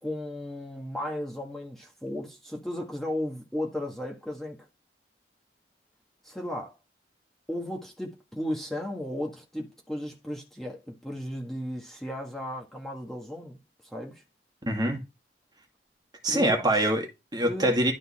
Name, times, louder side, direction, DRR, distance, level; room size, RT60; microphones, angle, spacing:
voice 1, 0.0-4.7 6.2-6.8 7.5-13.6 13.8-14.2 16.3-16.9 17.4-17.7, left 1 dB, ahead, 1.7 m, -35 dB
voice 2, 14.6-15.0 16.2-17.9, right 1 dB, 25° right, 2.0 m, -25 dB
12.0 x 4.2 x 4.2 m
head